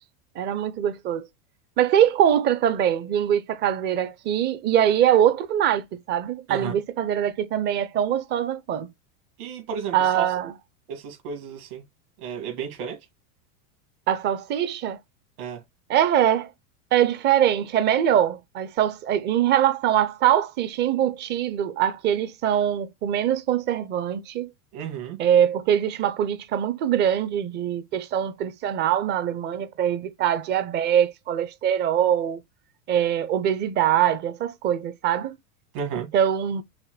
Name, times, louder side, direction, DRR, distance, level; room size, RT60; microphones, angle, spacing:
voice 1, 0.4-1.3 1.8-8.9 9.9-10.5 14.1-15.0 15.9-16.5 16.9-24.5 25.2-32.4 32.9-35.4 36.1-36.6, right 10 dB, 25° right, 0.4 m, -23 dB
voice 2, 9.4-10.5 10.9-11.8 12.2-13.0 15.4-15.6 24.7-25.2 35.7-36.1, right 7 dB, 70° right, 2.4 m, -33 dB
6.0 x 2.2 x 3.1 m
supercardioid pair, 130°, 46 cm